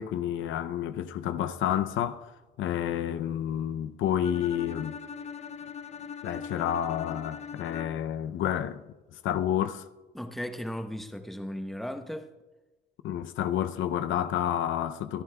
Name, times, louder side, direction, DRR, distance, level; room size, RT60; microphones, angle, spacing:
voice 1, 0.0-2.3 2.6-5.0 6.2-8.8 9.1-9.9 13.0-15.2, left 10 dB, 80° left, 0.5 m, -30 dB
Bowed string instrument, 4.2-8.2, left 6 dB, 35° left, 0.5 m, -41 dB
voice 2, 10.1-12.3, equal, ahead, 0.8 m, -36 dB
22.5 x 9.8 x 2.2 m
cardioid pair, 90°, 20 cm